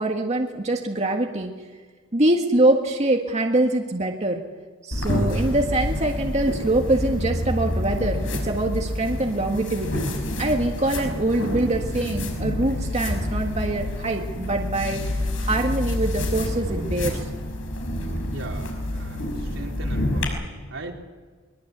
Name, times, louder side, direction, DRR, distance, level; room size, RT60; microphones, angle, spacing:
voice 1, 0.0-1.5 2.1-4.4 4.8-15.0 15.4-17.2, right 2 dB, 35° right, 2 dB, 1.7 m, -24 dB
sound 1, 4.9-20.2, left 1 dB, 80° left, 5.8 m, -28 dB
voice 2, 18.3-20.9, right 2 dB, 80° right, 0 dB, 4.0 m, -38 dB
23.0 x 22.5 x 8.1 m, 1.5 s
head